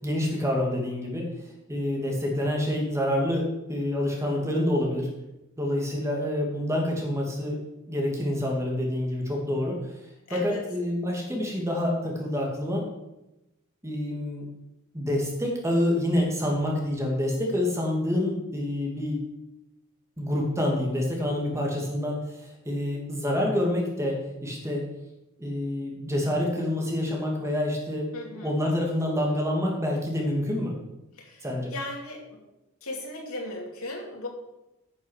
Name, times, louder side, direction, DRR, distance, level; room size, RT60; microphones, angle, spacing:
voice 1, 0.0-1.3 1.7-5.1 5.6-7.6 7.9-9.9 10.3-12.8 13.8-14.5 14.9-19.2 20.2-24.8 25.4-30.7 31.4-31.7, left 1 dB, 15° right, -1 dB, 2.5 m, -27 dB
voice 2, 10.3-10.6 28.1-28.5 31.2-31.4 31.7-32.4 32.8-34.3, left 2 dB, 85° left, 0 dB, 2.7 m, -36 dB
9.8 x 7.1 x 6.5 m, 0.92 s
head